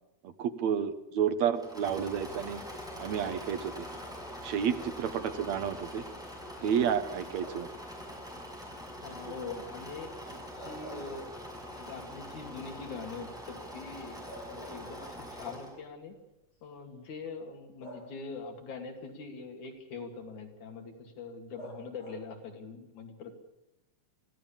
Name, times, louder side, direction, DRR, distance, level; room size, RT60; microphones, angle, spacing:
voice 1, 0.4-2.6 3.0-3.9 4.4-6.0 6.6-7.7, right 8 dB, 70° right, 10 dB, 2.2 m, -30 dB
Engine / Mechanisms, 1.5-15.8, equal, ahead, 6.2 m, -44 dB
sound 1, 7.4-7.9 10.4-11.8 12.2-12.3 13.8-13.9 14.3-15.4 16.4-16.5 17.8-18.5 21.6-22.4, equal, 55° left, 8.4 m, -48 dB
voice 2, 9.0-10.1 10.6-11.3 11.7-16.2 16.6-23.3, left 4 dB, 75° left, 4 dB, 3.9 m, -43 dB
24.0 x 16.0 x 7.3 m, 0.92 s
omnidirectional pair, 3.4 m